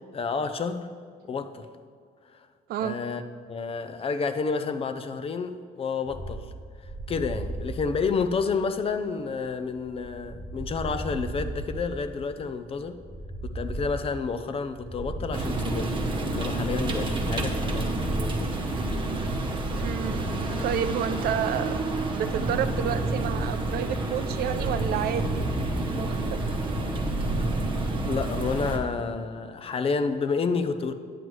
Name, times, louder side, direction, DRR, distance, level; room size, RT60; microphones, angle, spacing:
voice 1, 0.1-0.9 1.3-1.7 2.8-3.2 3.5-6.4 6.8-13.0 13.4-16.0 16.3-18.5 28.0-30.9, left 5 dB, 35° left, 10 dB, 0.5 m, -30 dB
sound 1, 6.1-21.0, right 2 dB, ahead, 0.8 m, -37 dB
sound 2, 15.3-28.8, right 2 dB, 30° right, 0.9 m, -29 dB
voice 2, 19.8-20.3 20.6-21.8 22.1-25.6 25.9-26.4, right 10 dB, 65° right, 11 dB, 0.4 m, -30 dB
9.3 x 7.8 x 3.1 m, 2.2 s
cardioid pair, 110°, 17 cm